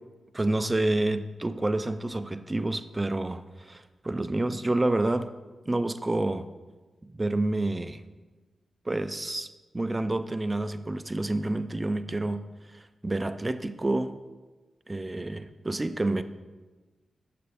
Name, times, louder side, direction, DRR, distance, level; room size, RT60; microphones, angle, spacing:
voice 1, 0.3-5.3 5.7-6.5 7.1-8.0 8.9-12.4 12.7-14.2 14.9-16.2, right 2 dB, 25° right, 12 dB, 0.4 m, -28 dB
9.1 x 7.6 x 2.6 m, 1.2 s
supercardioid pair, 45°, 0 cm